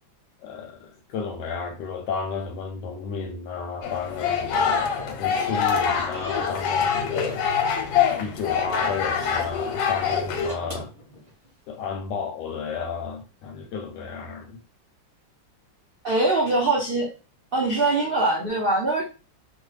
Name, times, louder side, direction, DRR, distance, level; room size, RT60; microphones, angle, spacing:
voice 1, 0.4-7.4 8.1-10.9 11.7-14.6, left 5 dB, 75° left, 1.1 m, -32 dB
sound 1, 3.8-10.5, left 7 dB, 90° left, 1.5 m, -25 dB
Slam / Squeak, 4.9-7.0 7.3-8.3 8.6-9.5 10.2-11.7, left 1 dB, 20° right, 1.1 m, -44 dB
voice 2, 16.0-17.1 17.5-19.0, right 2 dB, 80° right, 0.5 m, -22 dB
3.2 x 2.2 x 3.2 m
omnidirectional pair, 2.2 m